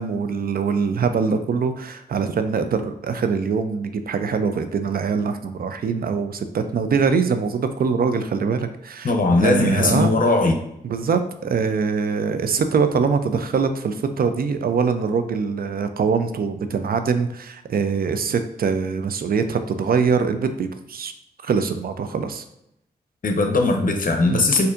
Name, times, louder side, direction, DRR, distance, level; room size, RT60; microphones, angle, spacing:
voice 1, 0.0-10.1 10.8-21.1 21.4-22.4 24.3-24.5, right 5 dB, 60° right, 9 dB, 0.4 m, -23 dB
voice 2, 9.0-10.5 23.2-24.7, left 2 dB, 50° left, 4 dB, 0.6 m, -19 dB
4.2 x 2.6 x 2.5 m, 0.80 s
cardioid pair, 45°, 18 cm